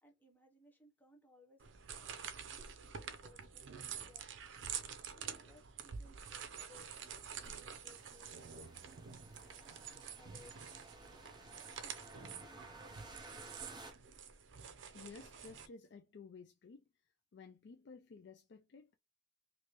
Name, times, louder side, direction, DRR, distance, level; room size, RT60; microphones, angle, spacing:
voice 1, 0.0-4.3 5.1-6.9 7.3-9.2 9.6-9.8 10.1-10.6 11.8-13.9, left 2 dB, 10° left, 0.9 m, -65 dB
sound 1, 1.6-15.7, right 7 dB, 75° right, 0.5 m, -48 dB
sound 2, 6.8-13.9, right 2 dB, 25° right, 0.6 m, -56 dB
voice 2, 14.9-16.8 17.3-18.9, left 4 dB, 65° left, 0.4 m, -54 dB
3.2 x 2.7 x 2.9 m
head